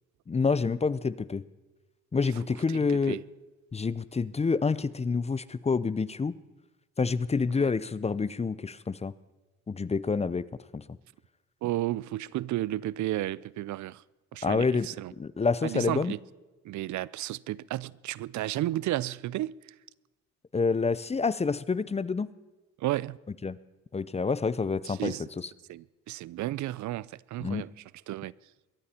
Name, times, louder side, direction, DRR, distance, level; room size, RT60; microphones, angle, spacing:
voice 1, 0.3-1.4 2.1-3.2 3.7-6.3 7.0-9.1 9.7-10.4 10.7-10.8 14.4-14.9 15.2-16.1 20.5-22.3 23.4-23.6 23.9-25.5 27.4-27.6, left 4 dB, 20° left, 0.6 m, -28 dB
voice 2, 2.7-3.2 7.5-7.7 11.6-14.0 14.3-15.1 15.6-16.2 16.7-19.5 22.8-23.2 24.8-25.2 25.7-27.7 28.1-28.3, right 15 dB, 70° right, 0.5 m, -33 dB
22.0 x 14.0 x 4.4 m
cardioid pair, 90°, 30 cm